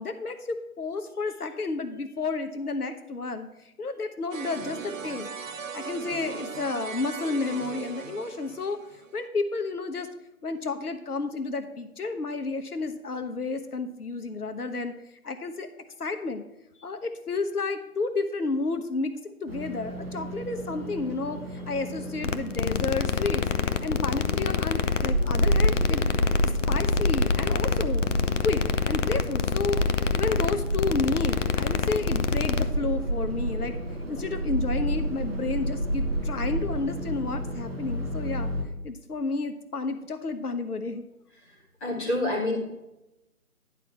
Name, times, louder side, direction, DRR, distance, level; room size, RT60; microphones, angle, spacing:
voice 1, 0.0-3.5 3.8-5.3 5.7-8.8 9.1-10.1 10.4-14.9 15.2-15.7 16.0-16.4 16.8-23.5 23.8-26.1 26.4-28.0 28.4-29.8 30.2-33.8 34.1-38.5 38.8-41.0, left 3 dB, 80° left, 8 dB, 1.1 m, -31 dB
sound 1, 4.3-9.2, right 6 dB, 60° right, 0.7 m, -38 dB
sound 2, 19.5-38.6, equal, 40° right, 1.6 m, -30 dB
sound 3, 22.2-32.7, left 7 dB, 55° left, 0.6 m, -27 dB
voice 2, 41.8-42.6, left 1 dB, 10° left, -7 dB, 1.6 m, -27 dB
10.5 x 4.2 x 5.7 m, 0.93 s
figure-of-eight pair, 160°, 44 cm